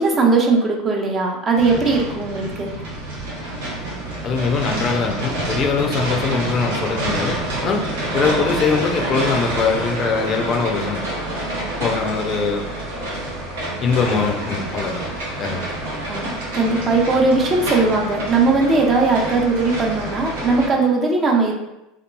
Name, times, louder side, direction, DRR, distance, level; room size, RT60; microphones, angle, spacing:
voice 1, 0.0-2.7 8.2-8.5 16.1-21.5, right 3 dB, 35° right, 0 dB, 0.5 m, -19 dB
sound 1, 1.5-20.7, right 1 dB, 85° right, 0.7 m, -27 dB
voice 2, 4.2-7.8 8.1-11.0 11.8-12.7 13.8-15.1 15.4-15.7, left 5 dB, 45° left, 2 dB, 0.4 m, -22 dB
2.8 x 2.3 x 2.2 m, 0.91 s
hypercardioid pair, 90°, 0 cm